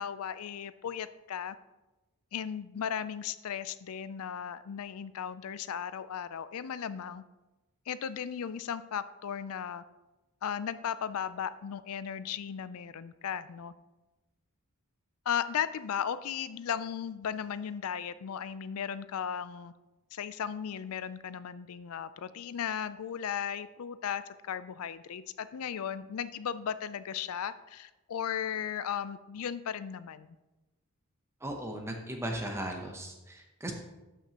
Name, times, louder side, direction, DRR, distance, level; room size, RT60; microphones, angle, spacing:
voice 1, 0.0-1.6 2.3-7.2 7.9-9.8 10.4-13.7 15.3-19.7 20.1-30.4, left 8 dB, 70° left, 15 dB, 0.4 m, -36 dB
voice 2, 31.4-33.7, right 1 dB, 10° right, 2 dB, 0.8 m, -37 dB
12.5 x 5.8 x 2.9 m, 1.1 s
head